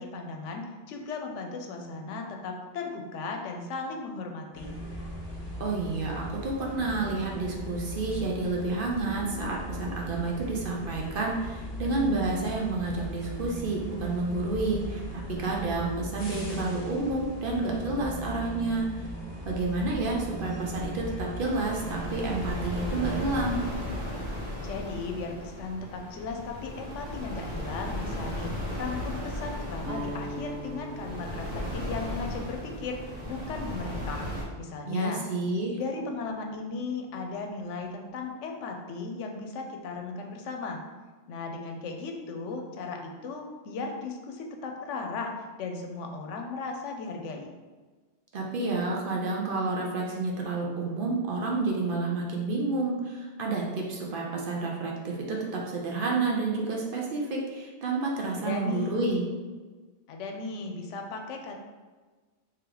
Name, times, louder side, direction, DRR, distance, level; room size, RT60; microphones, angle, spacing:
voice 1, 0.0-4.8 24.6-33.0 33.3-34.2 34.5-35.2 35.8-40.8 41.3-45.3 45.6-47.5 58.4-58.9 60.1-61.5, left 4 dB, 85° left, 3 dB, 0.9 m, -36 dB
sound 1, 4.5-23.5, equal, 45° left, 1.1 m, -38 dB
voice 2, 5.6-19.1 19.4-23.6 34.9-35.8 48.3-59.2, right 3 dB, 55° right, -2 dB, 0.7 m, -30 dB
sound 2, 21.4-34.4, left 1 dB, 80° right, 1.4 m, -36 dB
Guitar, 29.8-35.8, equal, 25° right, 0.4 m, -43 dB
3.3 x 2.9 x 3.8 m, 1.3 s
omnidirectional pair, 1.2 m